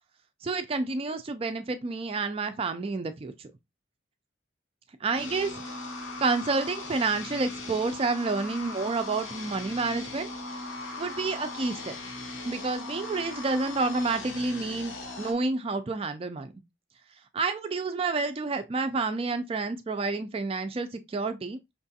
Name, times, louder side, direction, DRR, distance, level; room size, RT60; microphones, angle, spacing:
voice 1, 0.4-3.5 5.0-5.7 6.2-10.3 11.0-12.0 12.5-16.5 17.3-21.6, right 3 dB, 30° right, 0.3 m, -29 dB
sound 1, 5.1-15.3, left 2 dB, 75° left, 0.9 m, -39 dB
5.8 x 2.3 x 2.7 m
head